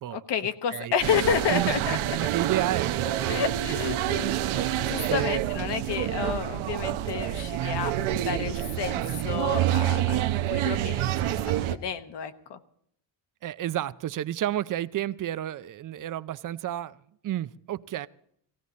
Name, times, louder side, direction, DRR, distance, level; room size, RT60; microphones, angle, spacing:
voice 1, 0.1-2.0 3.3-7.9 8.2-12.6, left 7 dB, 55° left, 1.2 m, -31 dB
sound 1, 1.0-11.8, right 12 dB, 75° right, 0.9 m, -27 dB
voice 2, 1.5-4.0 5.1-5.5 13.4-17.0 17.2-18.1, right 12 dB, 45° right, 0.5 m, -31 dB
18.0 x 16.5 x 4.1 m
cardioid pair, 140°, 49 cm